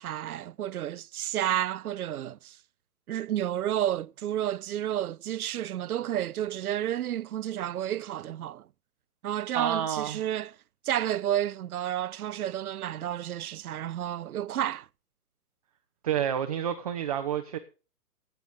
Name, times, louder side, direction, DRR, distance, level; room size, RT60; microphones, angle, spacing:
voice 1, 0.0-2.6 3.1-8.7 9.2-10.5 10.8-14.9, right 11 dB, 70° right, 0.5 m, -31 dB
voice 2, 9.5-10.2 16.0-17.6, right 9 dB, 25° right, 0.6 m, -29 dB
16.0 x 8.1 x 5.2 m
hypercardioid pair, 145°, 47 cm